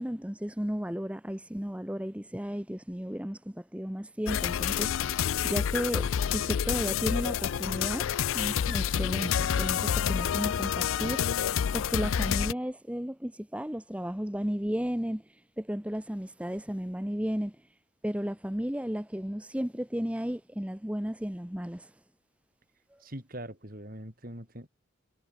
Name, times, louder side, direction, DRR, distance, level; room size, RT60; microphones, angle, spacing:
voice 1, 0.0-11.5 11.7-17.6 18.0-21.9 22.9-23.0, equal, 5° right, 0.9 m, -34 dB
sound 1, 4.3-12.5, left 8 dB, 75° left, 0.4 m, -28 dB
voice 2, 23.0-24.7, right 1 dB, 45° right, 5.0 m, -42 dB
head